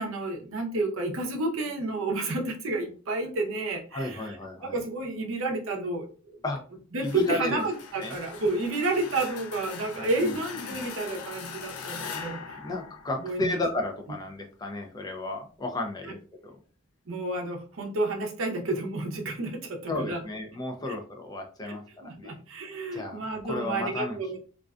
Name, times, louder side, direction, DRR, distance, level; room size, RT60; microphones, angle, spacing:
voice 1, 0.0-4.4 4.6-6.4 6.9-12.6 13.2-13.6 17.1-20.2 21.7-21.8 22.0-24.4, right 2 dB, 65° right, 2 dB, 0.6 m, -30 dB
voice 2, 3.9-4.8 6.4-6.6 7.0-7.6 8.0-8.2 10.0-10.4 10.7-10.8 12.6-16.6 19.9-22.4 22.7-24.4, left 2 dB, 20° left, 3 dB, 0.4 m, -33 dB
sound 1, 7.0-13.7, left 5 dB, 85° left, 0.4 m, -41 dB
2.4 x 2.2 x 2.3 m, 0.40 s
head